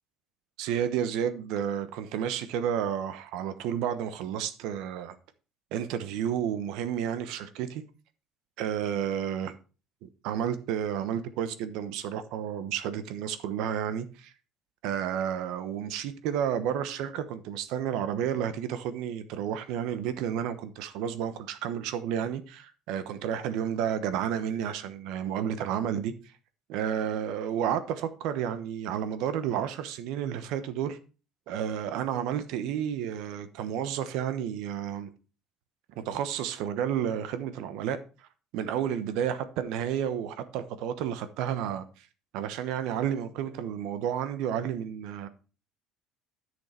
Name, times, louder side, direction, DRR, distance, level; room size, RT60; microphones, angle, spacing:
voice 1, 0.6-5.2 5.7-7.8 8.6-9.5 10.0-14.3 14.8-26.1 26.7-31.0 31.5-35.1 36.0-38.3 38.5-42.1 42.3-45.3, right 9 dB, 70° right, 1.0 m, -31 dB
10.5 x 6.4 x 4.3 m
cardioid pair, 120°, 0 cm